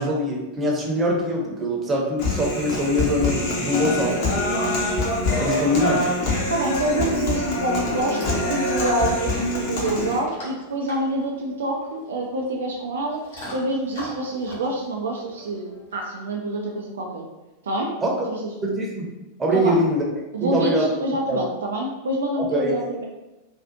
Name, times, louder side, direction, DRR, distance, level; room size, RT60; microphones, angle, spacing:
voice 1, 0.0-4.6 5.4-6.1 18.0-18.3 18.6-19.1 19.4-20.0 20.4-20.9 21.3-21.4 22.5-22.7, equal, 20° right, -2 dB, 0.7 m, -23 dB
Human voice, 2.2-10.2, left 2 dB, 45° left, 0.7 m, -25 dB
voice 2, 6.5-13.2 13.5-17.2 17.6-17.9 18.3-18.4 19.5-19.7 20.3-23.0, right 1 dB, 65° right, 0 dB, 0.3 m, -26 dB
Chewing mastication / Dog, 7.9-16.0, left 1 dB, 65° left, 1.2 m, -41 dB
2.5 x 2.3 x 2.5 m, 1.0 s
figure-of-eight pair, 90°, 0 cm